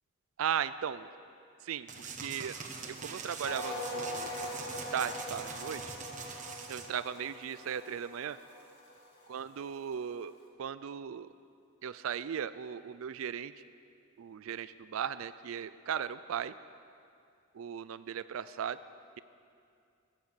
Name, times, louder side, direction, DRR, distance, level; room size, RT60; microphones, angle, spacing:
voice 1, 0.4-1.1 1.6-1.9 2.2-2.6 2.9-4.4 4.9-5.8 6.7-8.4 9.3-10.3 10.6-11.3 11.8-13.5 14.2-16.5 17.5-18.8, right 8 dB, 80° right, 15 dB, 0.4 m, -37 dB
sound 1, 1.9-6.9, right 5 dB, 35° right, 1.1 m, -43 dB
sound 2, 3.4-9.4 9.7-9.9, left 1 dB, 55° left, 2.1 m, -42 dB
14.0 x 11.0 x 7.3 m, 2.4 s
head